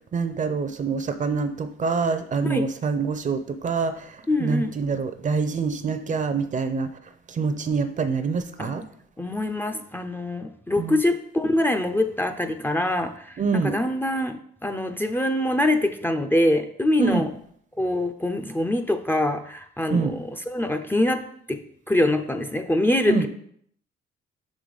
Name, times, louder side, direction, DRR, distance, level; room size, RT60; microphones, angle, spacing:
voice 1, 0.1-6.9 7.3-8.8 10.8-11.0 13.4-13.7 17.0-17.2 19.9-20.1 23.1-23.3, right 4 dB, 40° right, 10 dB, 0.6 m, -25 dB
voice 2, 4.3-4.7 8.6-8.7 9.2-17.3 17.8-21.6 21.9-23.3, left 1 dB, 10° left, 7 dB, 0.5 m, -24 dB
5.5 x 5.0 x 4.0 m, 0.65 s
cardioid pair, 90°, 20 cm